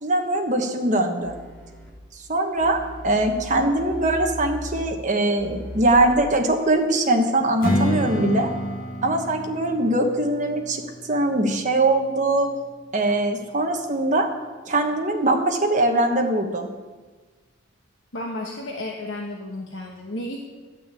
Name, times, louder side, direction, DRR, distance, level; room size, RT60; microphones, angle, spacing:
voice 1, 0.0-1.4 2.3-2.8 3.0-8.5 9.0-12.5 12.9-14.3 14.7-16.7, right 2 dB, 40° right, 3 dB, 1.3 m, -22 dB
sound 1, 1.2-1.9 2.6-4.8 5.4-6.2, left 1 dB, 5° left, 2.8 m, -38 dB
Strum, 7.6-12.8, equal, 45° left, 1.9 m, -29 dB
voice 2, 18.1-20.4, left 1 dB, 65° left, -1 dB, 1.2 m, -32 dB
12.0 x 6.0 x 8.4 m, 1.3 s
head